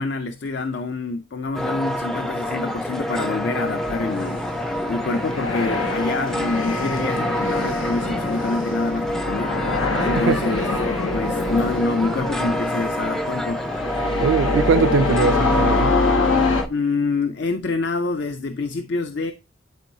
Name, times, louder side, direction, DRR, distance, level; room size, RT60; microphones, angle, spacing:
voice 1, 0.0-4.4 4.9-9.6 10.0-10.7 11.1-13.7 16.7-19.3, left 3 dB, 60° left, 0.5 m, -26 dB
sound 1, 1.5-16.7, equal, ahead, 0.4 m, -27 dB
sound 2, 3.5-16.6, left 3 dB, 90° left, 1.1 m, -25 dB
voice 2, 14.2-15.9, right 6 dB, 75° right, 0.3 m, -21 dB
10.5 x 4.5 x 2.7 m
head